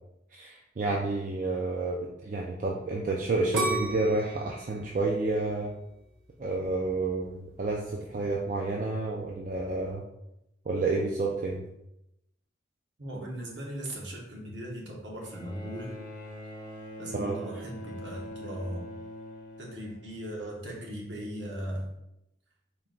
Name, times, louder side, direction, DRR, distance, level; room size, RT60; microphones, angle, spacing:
voice 1, 0.3-5.7 6.4-10.0 10.7-11.6 17.1-17.4, right 3 dB, 40° right, -1 dB, 0.3 m, -30 dB
sound 1, 3.5-6.4 7.0-7.4, right 2 dB, 90° right, 0.8 m, -34 dB
voice 2, 13.0-15.9 17.0-18.8 19.6-21.9, equal, 65° right, -2 dB, 1.0 m, -38 dB
Bowed string instrument, 15.2-20.7 21.8-21.9, equal, 45° left, 0.6 m, -44 dB
4.4 x 2.2 x 3.8 m, 0.84 s
head